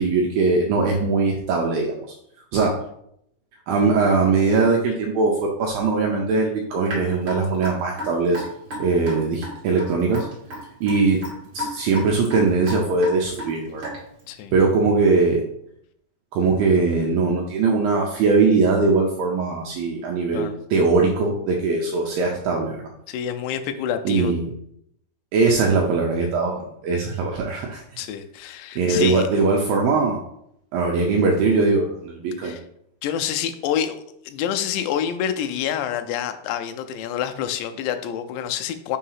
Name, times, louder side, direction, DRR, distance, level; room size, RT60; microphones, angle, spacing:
voice 1, 0.0-2.0 2.5-2.8 3.7-8.4 8.8-10.3 10.8-11.2 11.5-13.9 14.5-15.4 16.3-22.9 24.1-24.5 25.3-27.8 28.8-30.2 30.7-32.6, right 4 dB, 80° right, 0 dB, 2.1 m, -21 dB
Raindrop / Drip, 6.9-14.2, equal, 40° right, 2.1 m, -33 dB
voice 2, 23.1-24.3 28.0-29.3 32.4-32.6 33.0-39.0, left 9 dB, 90° left, 8 dB, 2.7 m, -27 dB
6.4 x 2.8 x 5.5 m, 0.73 s
omnidirectional pair, 4.8 m